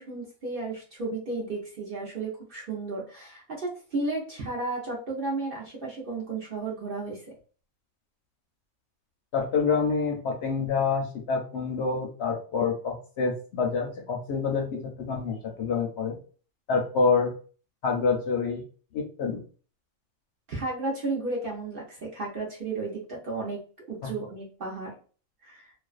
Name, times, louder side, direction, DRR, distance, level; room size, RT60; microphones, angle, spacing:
voice 1, 0.0-7.3 20.5-23.6 23.9-24.9 25.4-25.7, right 3 dB, 55° right, -3 dB, 0.7 m, -33 dB
voice 2, 9.3-16.2 16.7-17.3 17.8-18.6 18.9-19.4 24.0-24.1, left 5 dB, 65° left, 1 dB, 0.7 m, -27 dB
2.5 x 2.2 x 2.3 m, 0.40 s
omnidirectional pair, 1.4 m